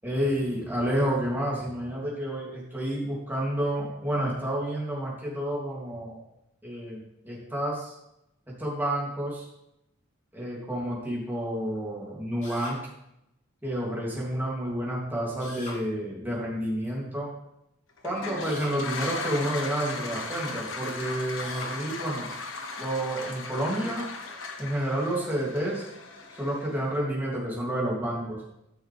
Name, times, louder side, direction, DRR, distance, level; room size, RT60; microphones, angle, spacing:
voice 1, 0.0-6.2 6.6-7.9 8.5-9.4 10.3-12.8 13.6-17.3 18.0-22.3 22.8-24.0 24.6-25.8 26.4-28.4, right 1 dB, 10° right, -5 dB, 3.0 m, -30 dB
Drill, 12.4-12.8 15.4-15.8 18.4-18.8 21.4-21.8, left 2 dB, 40° left, 2.9 m, -40 dB
Toilet flush, 18.0-26.9, left 3 dB, 70° left, 1.3 m, -37 dB
13.5 x 6.3 x 3.6 m, 0.82 s
head